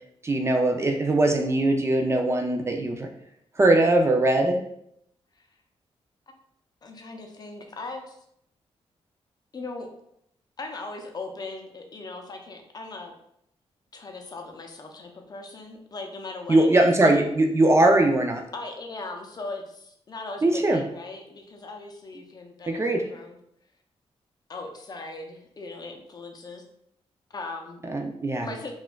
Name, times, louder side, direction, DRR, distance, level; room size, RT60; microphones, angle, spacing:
voice 1, 0.2-3.1 3.6-4.6 16.5-18.4 20.4-20.8 22.7-23.1 27.9-28.5, right 2 dB, 25° right, 2 dB, 0.3 m, -21 dB
voice 2, 6.8-8.2 9.5-9.9 10.6-13.1 13.9-17.1 18.5-23.4 24.5-26.6 27.3-27.8 28.4-28.7, left 3 dB, 40° left, 3 dB, 0.5 m, -39 dB
4.2 x 2.3 x 2.2 m, 0.73 s
wide cardioid pair, 120°, 11 cm